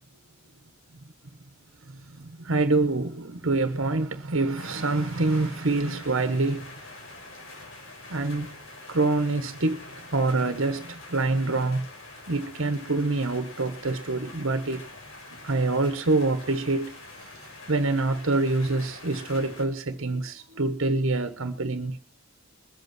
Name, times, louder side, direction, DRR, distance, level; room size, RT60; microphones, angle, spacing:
voice 1, 1.8-6.7 8.1-8.5 8.9-9.8 10.1-11.8 12.3-14.8 15.4-16.9 17.2-17.3 17.7-22.0, right 3 dB, 65° right, 1.2 m, -26 dB
sound 1, 4.6-19.7, left 2 dB, 60° left, 5.2 m, -45 dB
22.0 x 8.2 x 6.0 m
head